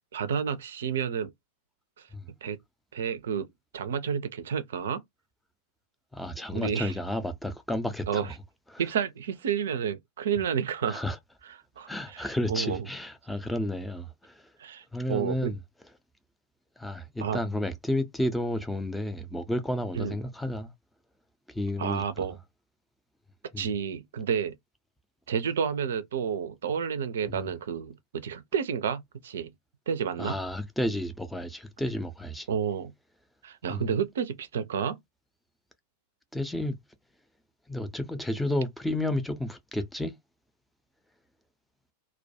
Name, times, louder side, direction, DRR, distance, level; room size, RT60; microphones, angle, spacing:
voice 1, 0.1-1.3 2.0-2.1 2.4-2.6 2.9-3.5 3.7-5.0 6.5-6.9 8.1-8.3 8.8-11.0 11.8-12.9 14.6-15.5 17.2-17.4 20.0-20.2 21.8-22.4 23.6-24.5 25.3-29.5 29.9-30.4 32.5-32.9 33.4-35.0, right 7 dB, 60° right, 0.4 m, -30 dB
voice 2, 6.1-8.3 8.7-8.8 10.9-11.2 11.9-14.5 14.9-15.6 16.8-20.7 21.5-22.3 23.5-23.7 27.3-27.5 30.2-32.5 33.7-33.9 36.3-36.8 37.7-40.2, left 1 dB, 5° left, 0.5 m, -31 dB
2.2 x 2.1 x 2.7 m
figure-of-eight pair, 90°, 0 cm